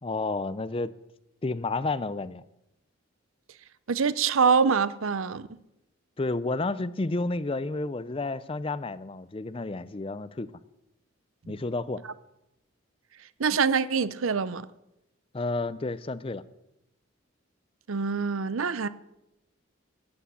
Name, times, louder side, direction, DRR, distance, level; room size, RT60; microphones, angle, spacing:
voice 1, 0.0-0.9 1.4-2.4 6.2-10.5 11.5-12.0 15.3-16.4, left 2 dB, 25° left, 0.5 m, -31 dB
voice 2, 3.9-5.5 13.4-14.7 17.9-18.9, right 5 dB, 80° right, 0.7 m, -25 dB
13.0 x 8.6 x 8.3 m
head